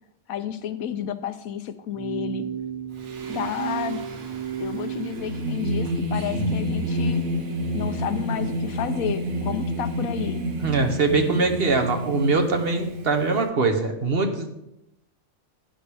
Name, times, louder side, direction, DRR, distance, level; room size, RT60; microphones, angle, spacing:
voice 1, 0.3-2.5 3.3-4.0 4.6-7.2 7.7-10.4, left 9 dB, 85° left, 10 dB, 1.2 m, -31 dB
sound 1, 1.9-5.1, right 9 dB, 25° right, 0.3 m, -32 dB
Singing, 3.0-13.4, equal, 80° right, 1.6 m, -29 dB
voice 2, 10.6-14.5, right 3 dB, 50° right, 6 dB, 1.1 m, -22 dB
11.5 x 9.9 x 3.4 m, 0.86 s
omnidirectional pair, 1.4 m